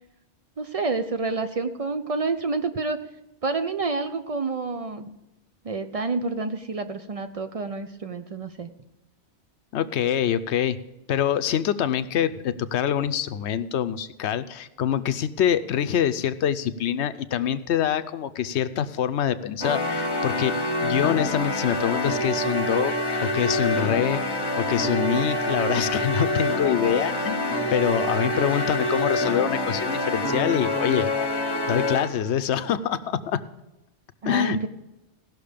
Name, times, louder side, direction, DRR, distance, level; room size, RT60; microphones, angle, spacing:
voice 1, 0.6-3.0 3.4-5.1 5.6-8.7 34.2-34.7, right 3 dB, 50° right, 9 dB, 0.4 m, -28 dB
voice 2, 9.7-10.8 11.1-20.5 20.8-22.9 23.2-24.2 24.6-27.4 27.7-31.1 31.7-33.4 34.2-34.6, left 9 dB, 75° left, 12 dB, 0.9 m, -25 dB
sound 1, 19.6-32.3, left 1 dB, 20° left, 1.0 m, -26 dB
16.5 x 6.3 x 5.1 m, 0.96 s
omnidirectional pair, 1.2 m